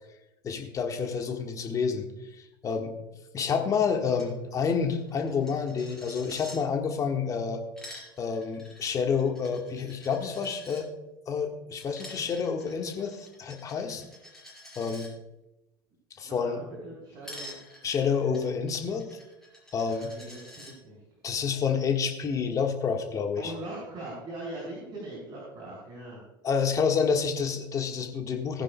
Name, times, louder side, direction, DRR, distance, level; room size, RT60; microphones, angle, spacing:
voice 1, 0.4-2.0 2.6-2.9 3.3-7.6 8.2-10.9 11.3-14.0 14.7-15.1 16.2-16.6 17.8-19.1 19.7-20.1 21.2-23.5 26.4-28.6, left 6 dB, 30° left, 4 dB, 1.6 m, -28 dB
Coin (dropping), 4.1-4.3 4.6-4.7 4.9-6.6 7.5-10.8 11.8-15.1 17.2-20.7, left 1 dB, 5° left, 4.4 m, -48 dB
voice 2, 16.2-17.6 19.9-21.0 23.4-26.2, right 1 dB, 40° right, -5 dB, 4.1 m, -41 dB
18.5 x 9.9 x 2.3 m, 0.97 s
figure-of-eight pair, 75°, 12 cm